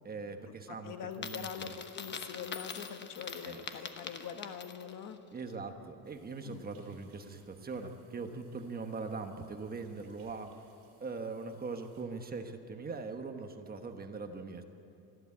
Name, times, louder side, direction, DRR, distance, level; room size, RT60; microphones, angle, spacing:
voice 1, 0.0-1.7 3.4-3.8 5.3-10.5 11.0-14.6, right 4 dB, 25° right, 5 dB, 1.2 m, -41 dB
voice 2, 0.7-5.2 6.4-6.7, left 8 dB, 55° left, 7 dB, 1.4 m, -43 dB
Coin (dropping), 1.1-5.0, left 6 dB, 25° left, 1.0 m, -44 dB
sound 1, 6.0-12.0, right 5 dB, 60° right, 6.7 m, -68 dB
24.5 x 13.5 x 8.5 m, 2.8 s
cardioid pair, 155°, 39 cm